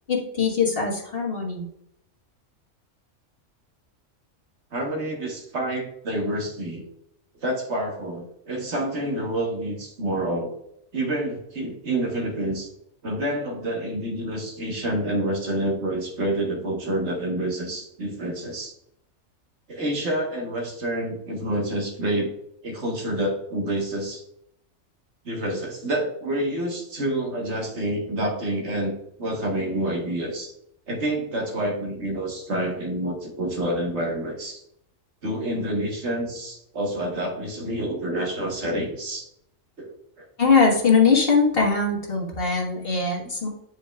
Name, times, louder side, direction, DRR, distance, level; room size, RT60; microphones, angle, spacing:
voice 1, 0.1-1.6 40.4-43.5, left 5 dB, 45° left, -1 dB, 1.5 m, -21 dB
voice 2, 4.7-6.8 7.4-10.5 10.9-12.7 13.0-18.7 19.7-22.3 22.6-24.2 25.2-30.5 30.9-34.6 35.2-39.3 39.8-39.9 40.2-40.3, right 1 dB, 60° right, 1 dB, 1.5 m, -28 dB
8.6 x 5.0 x 2.3 m, 0.76 s
omnidirectional pair, 1.4 m